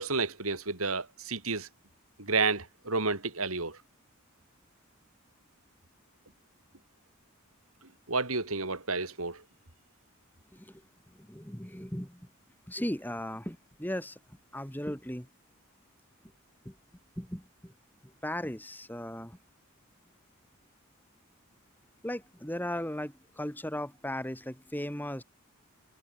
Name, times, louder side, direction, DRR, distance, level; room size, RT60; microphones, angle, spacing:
voice 1, 0.0-1.7 2.2-3.8 8.1-9.4, right 4 dB, 90° right, 6.3 m, -31 dB
voice 2, 11.2-12.2 12.7-14.2 14.5-15.3 16.7-16.8 17.2-17.7 18.2-19.4 22.0-25.2, left 1 dB, 10° left, 3.7 m, -37 dB
head